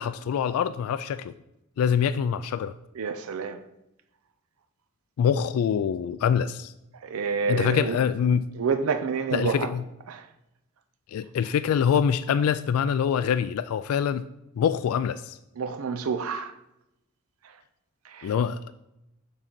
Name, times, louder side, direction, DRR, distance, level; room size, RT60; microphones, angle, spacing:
voice 1, 0.0-1.3 1.8-2.8 5.2-6.7 7.5-8.5 9.3-9.8 11.1-14.3 14.6-15.4 18.2-18.6, left 7 dB, 90° left, 0.3 m, -25 dB
voice 2, 3.0-3.6 7.0-8.0 8.5-9.7 10.1-10.3 15.6-16.5 18.0-18.3, right 5 dB, 80° right, 0.5 m, -28 dB
6.3 x 3.8 x 6.0 m
head